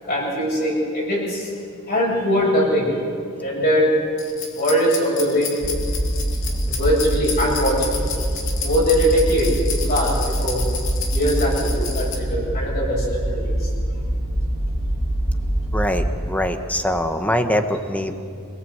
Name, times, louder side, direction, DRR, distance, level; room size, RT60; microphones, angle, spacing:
voice 1, 0.0-1.5 1.9-2.9 3.4-3.9 4.5-5.5 6.7-8.1 8.6-10.6 11.1-13.7, equal, 45° left, -5 dB, 7.8 m, -21 dB
sound 1, 4.2-12.1, left 6 dB, 65° left, 2.7 m, -31 dB
sound 2, 5.6-16.1, right 1 dB, 20° right, 4.5 m, -24 dB
voice 2, 15.7-18.1, left 1 dB, 5° left, 7 dB, 1.2 m, -23 dB
27.0 x 18.0 x 8.1 m, 2.4 s
head